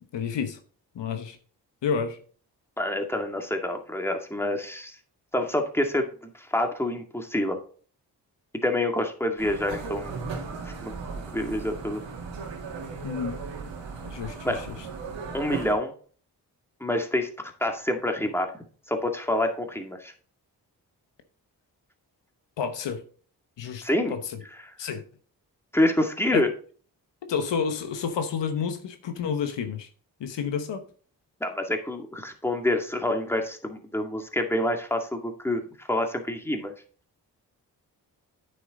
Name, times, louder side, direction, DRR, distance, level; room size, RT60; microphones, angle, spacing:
voice 1, 0.1-0.6 0.9-1.4 1.8-2.2 13.0-13.4 14.0-14.6 22.6-23.0 23.6-24.4 24.8-25.0 26.3-26.4 27.2-29.9 30.2-30.8, left 6 dB, 75° left, 1.1 m, -30 dB
voice 2, 2.8-5.0 5.3-7.6 8.6-10.1 10.6-11.0 11.3-12.0 14.4-14.6 15.3-15.9 16.8-18.5 18.9-20.1 23.8-24.1 24.6-24.8 25.7-26.5 31.4-36.7, left 1 dB, 5° left, 2.1 m, -27 dB
sound 1, 9.4-15.7, right 4 dB, 85° right, 2.0 m, -36 dB
9.0 x 6.9 x 3.7 m
supercardioid pair, 40°, 43 cm